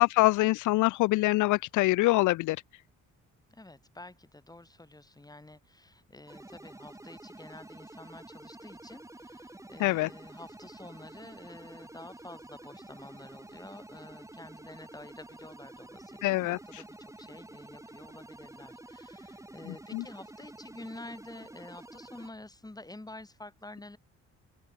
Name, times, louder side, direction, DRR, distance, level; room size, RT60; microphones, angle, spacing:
voice 1, 0.0-2.6 9.8-10.1 16.2-16.6 19.9-20.0, left 19 dB, 85° left, 0.5 m, -24 dB
voice 2, 3.5-24.0, left 2 dB, 10° left, 6.7 m, -49 dB
sound 1, 6.3-22.3, right 1 dB, 10° right, 3.2 m, -49 dB
open air
cardioid pair, 90°, 30 cm